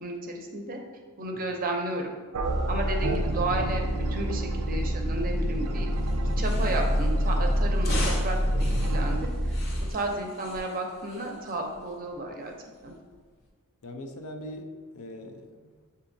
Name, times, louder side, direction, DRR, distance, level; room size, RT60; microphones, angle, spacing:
voice 1, 0.0-0.8 1.2-2.1 2.7-5.9 6.4-9.3 9.9-12.5 12.8-12.9, right 2 dB, 40° right, 2 dB, 0.6 m, -32 dB
sound 1, 2.3-9.3, right 4 dB, 90° right, 0.4 m, -36 dB
sound 2, 2.4-9.9, equal, ahead, 0.6 m, -27 dB
sound 3, 5.9-13.5, left 2 dB, 50° left, 0.8 m, -41 dB
voice 2, 13.8-15.9, left 1 dB, 75° left, 5 dB, 0.5 m, -42 dB
6.8 x 2.7 x 2.6 m, 1.5 s
head